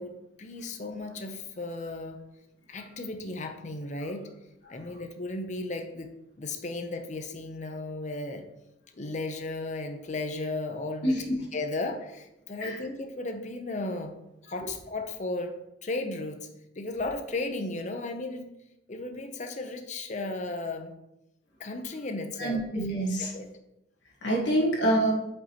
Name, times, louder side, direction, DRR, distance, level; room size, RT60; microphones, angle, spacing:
voice 1, 0.0-2.2 2.7-4.3 4.7-8.5 9.0-11.2 11.5-14.1 14.5-15.5 15.8-16.5 16.8-18.5 18.9-20.9 21.6-22.8 23.2-23.5, left 2 dB, 40° left, 6 dB, 0.7 m, -35 dB
voice 2, 11.0-11.4 12.6-12.7 22.4-23.3 24.2-25.1, right 1 dB, 65° left, -2 dB, 1.5 m, -26 dB
8.2 x 5.4 x 2.9 m, 0.88 s
head